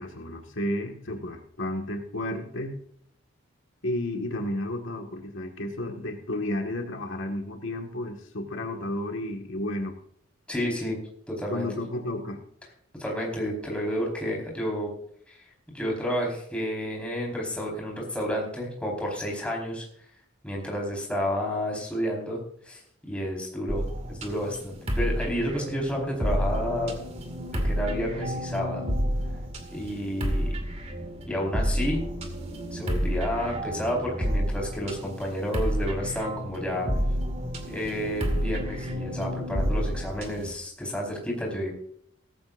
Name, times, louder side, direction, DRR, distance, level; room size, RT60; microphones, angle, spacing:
voice 1, 0.0-2.8 3.8-10.0 11.5-12.4, left 1 dB, 70° left, 3 dB, 1.9 m, -32 dB
voice 2, 10.5-11.0 11.3-11.7 13.0-14.9 15.3-19.9 20.4-26.9 27.6-28.9 29.7-30.5 31.3-32.0 32.7-36.9 37.7-41.7, equal, 5° left, -2 dB, 4.7 m, -30 dB
sound 1, 23.7-40.5, equal, 30° right, 2.3 m, -30 dB
17.5 x 14.5 x 2.6 m, 0.66 s
head